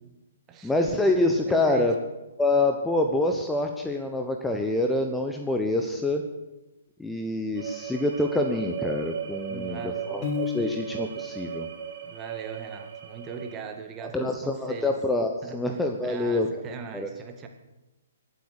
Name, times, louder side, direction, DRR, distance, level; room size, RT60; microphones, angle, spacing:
voice 1, 0.6-1.9 2.4-6.2 7.0-11.7 14.1-16.5 16.9-17.1, left 2 dB, 5° left, 4 dB, 1.1 m, -26 dB
voice 2, 1.4-1.9 9.5-10.2 12.0-14.9 15.4-15.6 16.0-17.5, right 6 dB, 25° right, 5 dB, 2.0 m, -39 dB
sound 1, 7.6-13.6, right 9 dB, 55° right, 2.1 m, -36 dB
Piano, 10.2-11.2, left 7 dB, 35° left, 2.5 m, -32 dB
23.0 x 8.2 x 6.8 m, 1.0 s
figure-of-eight pair, 130°, 0 cm